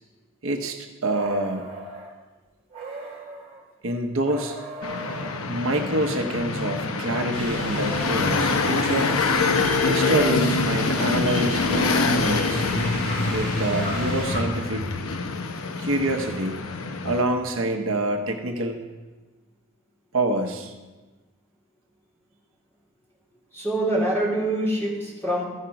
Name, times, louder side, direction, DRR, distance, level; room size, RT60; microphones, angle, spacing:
voice 1, 0.4-1.7 3.8-4.6 5.5-9.2 9.8-12.7 13.3-14.9 15.8-16.6 17.0-18.8 20.1-20.7, right 1 dB, 75° right, 4 dB, 0.9 m, -26 dB
sound 1, 1.1-2.1 2.7-3.6 4.2-5.5 6.6-8.1, right 2 dB, 30° right, 1.5 m, -39 dB
sound 2, 4.8-17.2, left 3 dB, 90° left, 0.7 m, -25 dB
sound 3, 7.3-14.4, equal, 30° left, 2.4 m, -34 dB
voice 2, 23.5-25.4, right 1 dB, 10° left, -5 dB, 2.7 m, -25 dB
14.0 x 5.1 x 5.8 m, 1.2 s
head